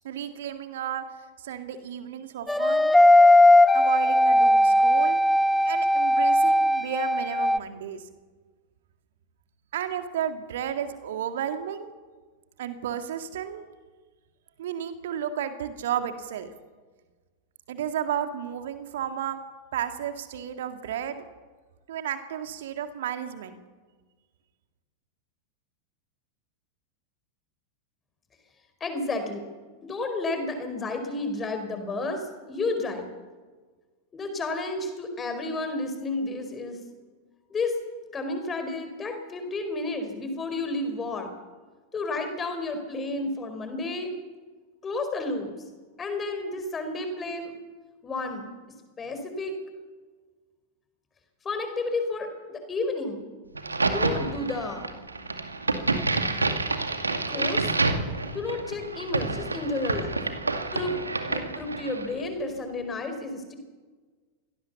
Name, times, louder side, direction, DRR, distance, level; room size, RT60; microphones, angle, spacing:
voice 1, 0.0-1.0 1.4-3.0 3.7-5.2 5.6-8.0 9.7-11.9 12.6-13.6 14.6-16.5 17.7-19.4 19.7-21.2 21.9-23.6, right 9 dB, 60° right, 8 dB, 2.0 m, -33 dB
sound 1, 2.5-7.6, left 1 dB, 5° left, 0.6 m, -18 dB
voice 2, 28.8-29.4 29.8-33.1 34.1-36.8 37.5-37.7 38.1-41.3 41.9-44.1 44.8-45.5 46.0-47.5 48.0-48.4 49.0-49.5 51.4-53.2 53.9-54.9 57.3-57.7 58.3-60.2 60.7-60.9 61.3-63.5, left 2 dB, 20° left, 7 dB, 4.8 m, -31 dB
Crack, 53.5-62.1, right 3 dB, 80° right, 2.1 m, -28 dB
25.0 x 18.0 x 7.0 m, 1.4 s
figure-of-eight pair, 90°, 0 cm